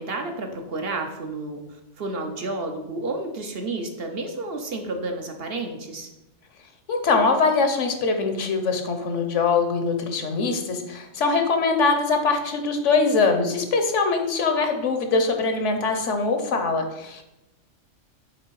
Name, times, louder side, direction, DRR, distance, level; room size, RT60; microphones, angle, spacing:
voice 1, 0.0-6.1, right 2 dB, 55° right, 4 dB, 1.0 m, -31 dB
voice 2, 6.9-17.2, left 4 dB, 75° left, 6 dB, 1.2 m, -22 dB
7.6 x 3.6 x 4.6 m, 0.91 s
omnidirectional pair, 1.3 m